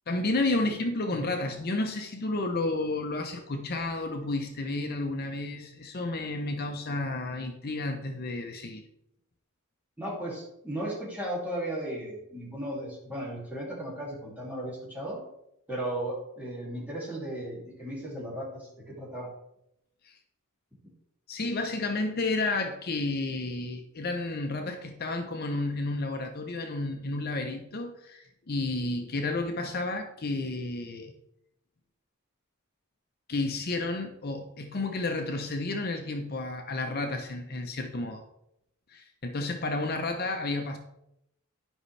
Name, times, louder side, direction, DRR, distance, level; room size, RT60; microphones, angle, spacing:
voice 1, 0.1-8.8 20.0-20.2 21.3-31.1 33.3-38.2 38.9-40.8, left 2 dB, 45° left, 4 dB, 0.7 m, -31 dB
voice 2, 10.0-15.2 15.7-19.3, right 1 dB, 10° right, -5 dB, 2.4 m, -36 dB
11.0 x 5.4 x 3.3 m, 0.81 s
head